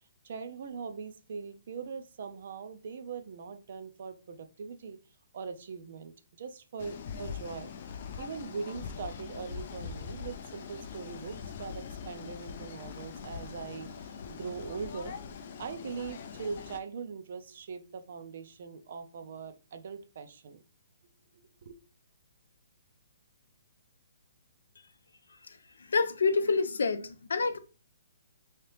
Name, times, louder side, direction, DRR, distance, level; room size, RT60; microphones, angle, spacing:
voice 1, 0.2-5.0 5.3-7.7 8.2-15.1 15.6-20.6 21.3-21.8, right 5 dB, 45° right, 0.4 m, -41 dB
sound 1, 6.8-16.8, left 6 dB, 35° left, 0.4 m, -42 dB
voice 2, 25.9-27.6, left 4 dB, 90° left, 0.5 m, -27 dB
3.5 x 2.8 x 3.3 m
hypercardioid pair, 175°, 0 cm